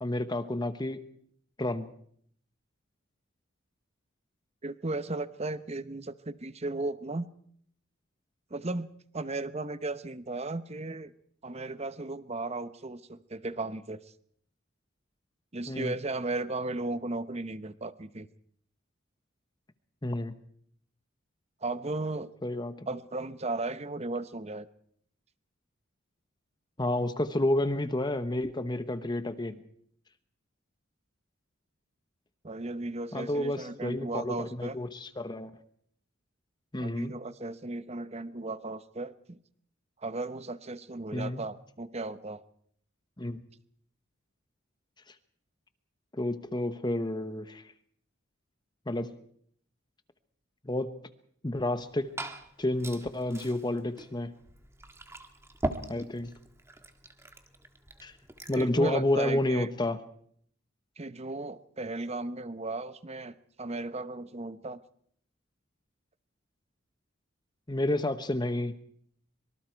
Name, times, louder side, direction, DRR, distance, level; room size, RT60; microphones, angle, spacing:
voice 1, 0.0-1.0 1.6-1.9 15.7-15.9 20.0-20.3 22.4-22.9 26.8-29.6 33.1-35.5 36.7-37.1 41.1-41.4 43.2-43.4 46.1-47.6 48.9-49.1 50.6-51.0 51.4-52.1 52.6-54.3 55.9-56.3 58.0-58.1 58.5-60.0 67.7-68.8, left 1 dB, 20° left, 10 dB, 1.1 m, -30 dB
voice 2, 4.6-7.3 8.5-11.1 11.4-14.0 15.5-18.3 21.6-22.3 22.9-24.7 32.4-34.8 36.8-39.4 40.0-42.4 58.6-59.7 61.0-64.8, right 2 dB, 30° right, 13 dB, 0.9 m, -35 dB
Liquid, 51.7-58.8, right 1 dB, 15° right, 1.7 m, -41 dB
25.0 x 24.0 x 4.6 m, 0.64 s
head